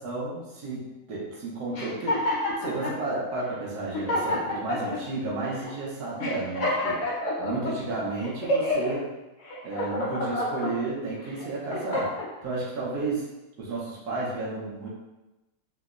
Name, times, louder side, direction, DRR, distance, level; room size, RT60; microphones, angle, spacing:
voice 1, 0.0-7.0 7.4-9.1 9.6-13.3 13.6-14.9, right 3 dB, 85° right, -4 dB, 1.3 m, -32 dB
sound 1, 1.7-3.0 3.6-3.7 3.9-5.0 5.6-5.7 6.2-7.7 8.2-8.9 9.4-10.7 11.3-12.3, left 1 dB, 65° left, 1.2 m, -28 dB
3.2 x 2.9 x 2.4 m, 1.0 s
omnidirectional pair, 1.6 m